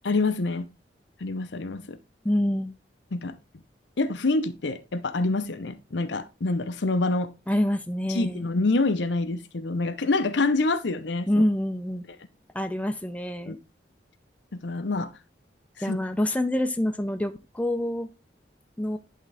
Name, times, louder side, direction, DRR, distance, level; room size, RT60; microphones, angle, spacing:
voice 1, 0.0-0.7 1.2-2.0 3.1-3.4 4.0-7.3 8.1-11.3 13.5-13.6 14.5-15.1 15.8-16.0, left 3 dB, 80° left, 0.7 m, -26 dB
voice 2, 2.2-2.7 7.5-8.4 11.3-12.0 12.5-13.6 15.8-18.1 18.8-19.0, left 1 dB, 10° left, 0.5 m, -26 dB
10.5 x 3.6 x 3.4 m
head